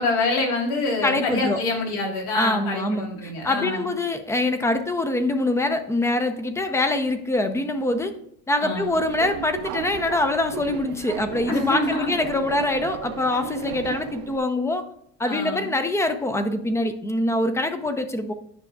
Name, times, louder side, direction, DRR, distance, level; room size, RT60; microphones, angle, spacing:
voice 1, 0.0-3.9 8.6-8.9 11.5-12.1 15.2-15.7, left 3 dB, 70° left, 0 dB, 3.0 m, -26 dB
voice 2, 1.0-1.6 2.3-8.1 8.5-14.8 15.2-18.3, left 2 dB, 10° left, 9 dB, 0.5 m, -24 dB
Subway metro underground, 8.7-14.4, right 9 dB, 60° right, 0.7 m, -35 dB
9.4 x 6.0 x 2.3 m, 0.70 s
cardioid pair, 150°, 33 cm